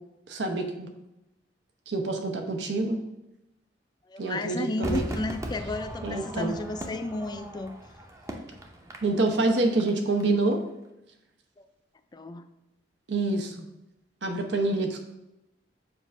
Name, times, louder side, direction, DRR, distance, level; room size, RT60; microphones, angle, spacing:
voice 1, 0.3-0.9 1.9-3.0 4.2-5.0 6.0-6.5 9.0-10.6 13.1-13.7 14.2-15.0, right 2 dB, 80° right, 4 dB, 0.8 m, -26 dB
voice 2, 4.1-7.8 12.1-12.5, left 2 dB, 25° left, 9 dB, 0.3 m, -32 dB
Crowd / Fireworks, 4.8-10.2 10.5-10.6, right 1 dB, 15° right, 0.6 m, -38 dB
7.1 x 2.5 x 5.3 m, 0.91 s
head